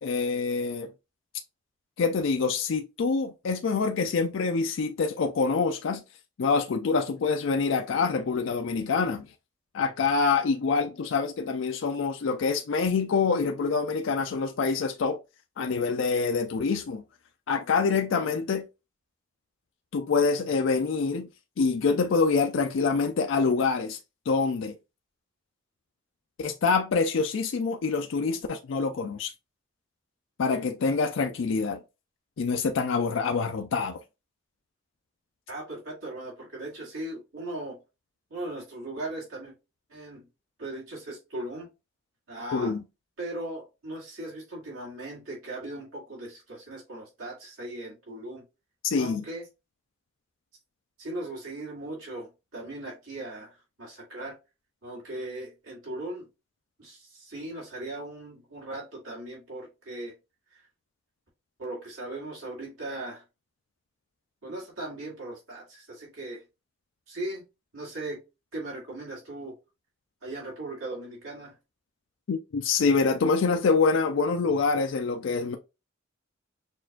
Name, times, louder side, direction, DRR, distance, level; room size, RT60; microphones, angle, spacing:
voice 1, 0.0-0.9 2.0-6.0 6.4-9.3 9.7-15.2 15.6-17.0 17.5-18.7 19.9-21.3 21.6-24.0 24.3-24.8 26.4-29.3 30.4-31.8 32.4-34.0 42.5-42.8 48.8-49.2 72.3-75.6, left 4 dB, 65° left, 0.4 m, -26 dB
voice 2, 35.5-37.8 38.3-39.5 39.9-40.3 40.6-41.7 42.3-42.8 43.2-48.4 49.0-49.4 51.0-54.4 54.8-56.3 56.8-60.1 60.5-60.6 61.6-63.2 64.4-66.4 67.1-67.4 67.7-68.2 68.5-69.5 70.2-71.5, right 1 dB, 85° right, 2.2 m, -38 dB
6.2 x 2.4 x 2.3 m
head